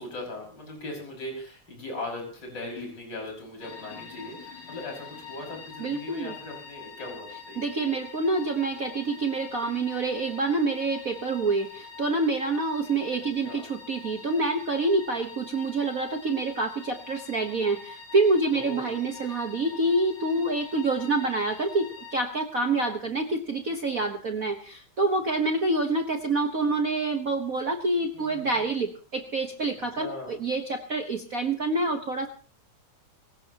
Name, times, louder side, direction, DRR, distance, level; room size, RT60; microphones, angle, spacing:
voice 1, 0.0-7.6 13.4-13.6 18.5-18.9 28.1-28.6 29.9-30.4, left 2 dB, 35° left, -1 dB, 6.4 m, -39 dB
sound 1, 3.6-22.2, left 5 dB, 70° left, 3.9 m, -45 dB
voice 2, 5.8-6.3 7.6-32.3, right 2 dB, 70° right, 5 dB, 0.8 m, -27 dB
25.0 x 16.0 x 2.9 m, 0.37 s
omnidirectional pair, 3.4 m